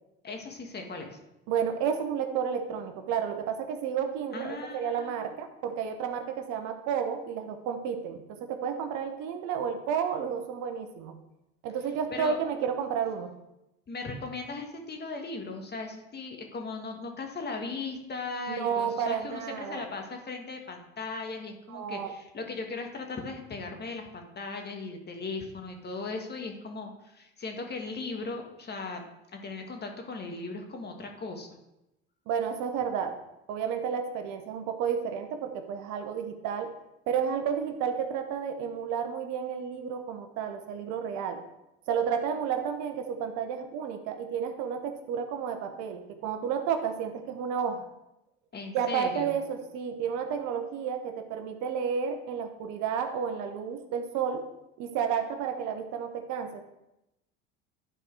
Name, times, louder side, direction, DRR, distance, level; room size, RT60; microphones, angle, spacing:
voice 1, 0.2-1.2 4.3-5.4 12.1-12.4 13.9-31.6 48.5-49.5, left 3 dB, 30° left, 4 dB, 1.7 m, -38 dB
voice 2, 1.5-11.2 11.6-13.3 18.5-19.9 21.7-22.1 32.3-33.2 33.5-36.7 37.1-41.4 41.9-47.8 48.7-54.4 54.8-56.6, right 7 dB, 65° right, 7 dB, 1.1 m, -31 dB
11.5 x 4.5 x 4.8 m, 0.90 s
hypercardioid pair, 70°, 31 cm